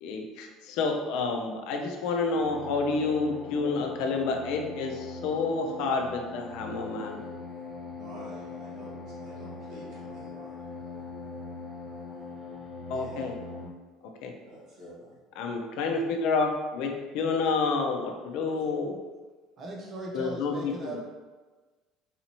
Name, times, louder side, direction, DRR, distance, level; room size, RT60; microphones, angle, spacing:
voice 1, 0.0-7.2 12.9-13.3 14.2-14.3 15.4-19.0 20.1-20.7, left 4 dB, 60° left, 2 dB, 0.5 m, -29 dB
sound 1, 2.3-13.7, left 3 dB, 25° left, 1.0 m, -41 dB
voice 2, 8.0-10.6 12.9-13.3 14.4-15.2 18.3-18.4, equal, 50° right, -8 dB, 1.3 m, -48 dB
voice 3, 19.6-21.0, right 1 dB, 30° right, -1 dB, 0.6 m, -38 dB
4.0 x 2.7 x 3.0 m, 1.3 s
cardioid pair, 175°, 0 cm